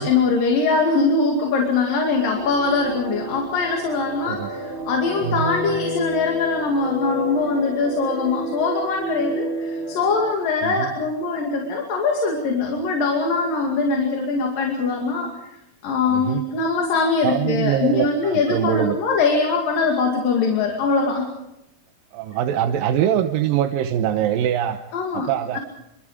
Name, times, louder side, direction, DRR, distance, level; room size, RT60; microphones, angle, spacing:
voice 1, 0.0-15.3 15.8-21.3 24.9-25.3, left 4 dB, 80° left, 1 dB, 4.1 m, -22 dB
sound 1, 2.3-10.3, right 1 dB, 35° right, 4.3 m, -31 dB
voice 2, 5.2-5.5 10.6-10.9 16.1-16.5 17.2-19.0 22.1-24.8 25.1-25.6, right 10 dB, 90° right, 7 dB, 2.7 m, -23 dB
27.0 x 25.5 x 5.0 m, 0.87 s
omnidirectional pair, 3.9 m